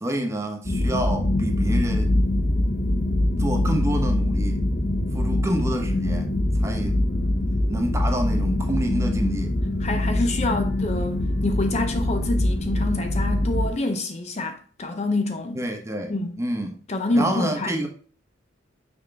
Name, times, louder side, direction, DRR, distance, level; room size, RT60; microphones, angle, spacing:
voice 1, 0.0-2.1 3.4-4.6 5.1-6.3 6.6-7.0 7.7-9.5 15.5-16.7 17.1-17.9, right 1 dB, 15° right, 1.0 m, -28 dB
sound 1, 0.6-13.7, left 1 dB, 60° left, 2.0 m, -23 dB
voice 2, 9.8-15.6 16.1-16.4 16.9-17.8, left 2 dB, 35° left, 0.6 m, -27 dB
6.1 x 4.8 x 3.3 m
head